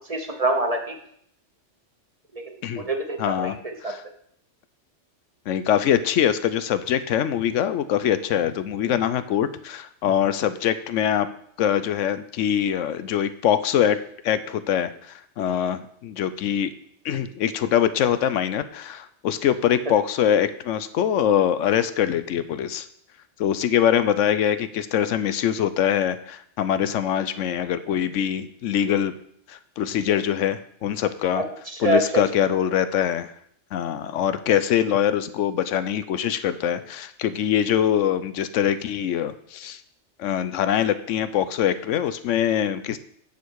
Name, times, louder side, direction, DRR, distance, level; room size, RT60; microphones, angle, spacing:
voice 1, 0.1-0.9 2.3-3.5 3.8-3.9 31.8-32.0, right 2 dB, 30° right, 4 dB, 1.0 m, -25 dB
voice 2, 3.2-4.0 5.5-11.3 11.6-14.0 14.2-16.7 17.0-22.9 23.4-29.1 29.5-31.4 31.8-33.3 33.7-39.8 40.2-43.0, left 9 dB, 90° left, 13 dB, 1.0 m, -23 dB
9.6 x 6.7 x 4.7 m, 0.67 s
omnidirectional pair, 1.2 m